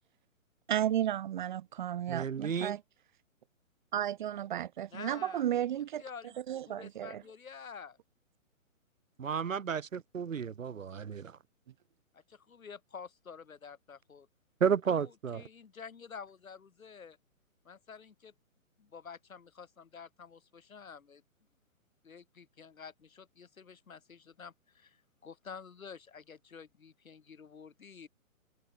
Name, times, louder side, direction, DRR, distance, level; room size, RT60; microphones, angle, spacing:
voice 1, 0.7-2.8 3.9-6.0 6.5-7.1, right 11 dB, 35° right, 1.6 m, -33 dB
voice 2, 2.1-2.8 9.2-11.2 14.6-15.4, right 7 dB, 65° right, 4.7 m, -32 dB
voice 3, 4.9-5.5 5.8-6.4 6.6-8.0 12.1-14.3 14.9-17.2 17.6-18.3 18.8-21.2 22.0-28.1, left 6 dB, 75° left, 7.8 m, -49 dB
hypercardioid pair, 160°, 42 cm